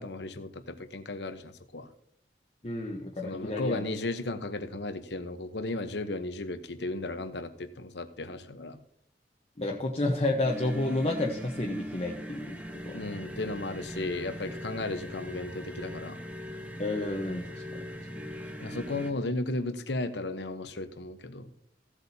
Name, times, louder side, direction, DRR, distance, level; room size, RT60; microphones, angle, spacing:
voice 1, 0.0-1.9 3.2-8.8 12.9-16.2 18.6-21.5, left 2 dB, 75° left, 10 dB, 1.0 m, -35 dB
voice 2, 2.6-3.8 9.6-12.6 12.9-13.0 16.8-17.8, left 2 dB, 35° left, -1 dB, 1.0 m, -30 dB
sound 1, 10.4-19.1, equal, 10° right, 1.1 m, -40 dB
16.0 x 8.2 x 2.8 m, 0.69 s
head